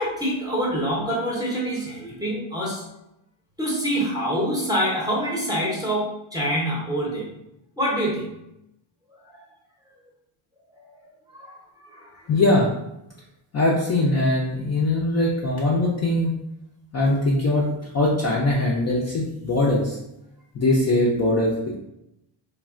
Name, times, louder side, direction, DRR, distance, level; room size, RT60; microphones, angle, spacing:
voice 1, 0.0-2.8 3.6-7.3 7.8-8.3 9.3-9.4 10.8-10.9 11.3-12.3, equal, 10° right, -4 dB, 0.7 m, -26 dB
voice 2, 12.3-12.7 13.5-16.3 16.9-17.7 17.9-20.0 20.5-21.8, left 2 dB, 35° left, -4 dB, 0.5 m, -21 dB
3.3 x 2.3 x 2.4 m, 0.85 s
cardioid pair, 115°, 50 cm